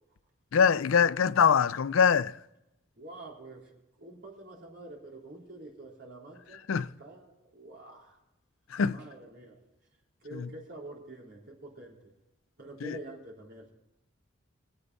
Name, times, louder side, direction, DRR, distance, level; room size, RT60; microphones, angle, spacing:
voice 1, 0.5-2.3 6.7-6.9 8.7-9.0, left 6 dB, 80° left, 0.5 m, -23 dB
voice 2, 3.0-6.7 7.0-8.2 8.9-9.6 10.2-12.1 12.6-13.7, right 2 dB, 60° right, 3.8 m, -47 dB
24.0 x 8.2 x 4.0 m
head